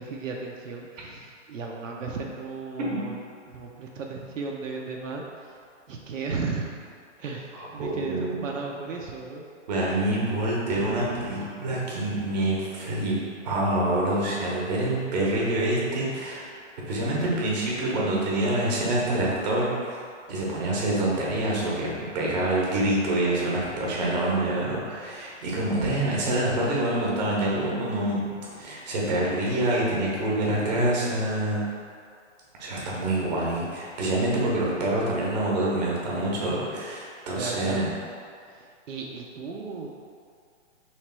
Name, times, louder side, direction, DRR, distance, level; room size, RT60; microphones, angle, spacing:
voice 1, 0.0-3.2 3.5-5.5 5.9-6.7 7.2-9.5 37.3-37.9 38.5-39.9, right 4 dB, 80° right, -1 dB, 0.7 m, -35 dB
voice 2, 7.5-8.4 9.7-16.5 16.9-20.0 20.3-28.2 28.5-31.6 32.6-37.9, right 1 dB, 35° right, -4 dB, 0.9 m, -26 dB
3.2 x 3.1 x 4.4 m, 2.2 s
hypercardioid pair, 155°, 38 cm